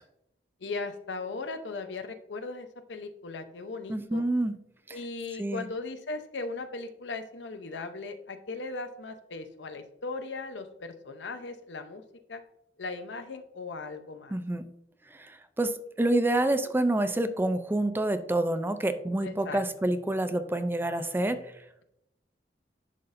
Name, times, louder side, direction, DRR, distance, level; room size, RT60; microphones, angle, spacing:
voice 1, 0.6-4.2 4.9-12.0 12.3-12.4 12.8-14.3 19.2-19.6, left 3 dB, 85° left, 8 dB, 0.7 m, -38 dB
voice 2, 3.9-4.5 4.9-5.0 5.4-5.7 14.3-14.6 15.1-15.7 16.0-21.4, right 1 dB, 10° right, 10 dB, 0.4 m, -27 dB
10.5 x 4.1 x 2.6 m, 0.80 s
head